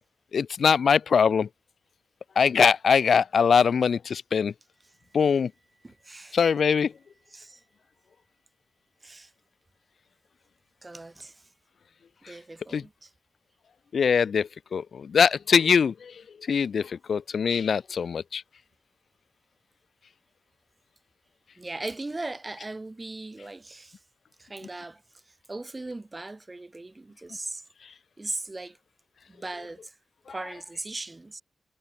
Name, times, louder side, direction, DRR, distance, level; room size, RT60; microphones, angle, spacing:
voice 1, 0.3-1.5 2.4-4.5 5.1-5.5 6.3-6.9 12.7-12.8 13.9-16.1 16.5-18.4, left 6 dB, 60° left, 0.5 m, -22 dB
voice 2, 4.8-5.2 5.8-6.4 7.3-7.6 9.0-9.3 10.8-11.5 12.2-13.1 21.6-24.0 24.4-27.6 28.2-28.8 29.3-30.0 30.3-31.4, right 2 dB, 20° right, 7.1 m, -39 dB
wide cardioid pair, 125°, 0 cm